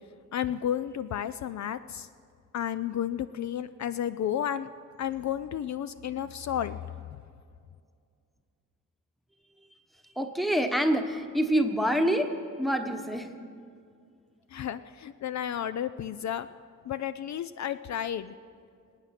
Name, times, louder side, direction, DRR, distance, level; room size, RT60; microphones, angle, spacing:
voice 1, 0.3-2.1 2.5-4.7 5.0-6.8 14.5-16.5 16.9-18.3, left 10 dB, 60° left, 13 dB, 0.4 m, -32 dB
voice 2, 10.2-12.3 12.6-13.3, equal, ahead, 6 dB, 1.1 m, -26 dB
25.5 x 8.9 x 5.9 m, 2.3 s
wide cardioid pair, 135°, 32 cm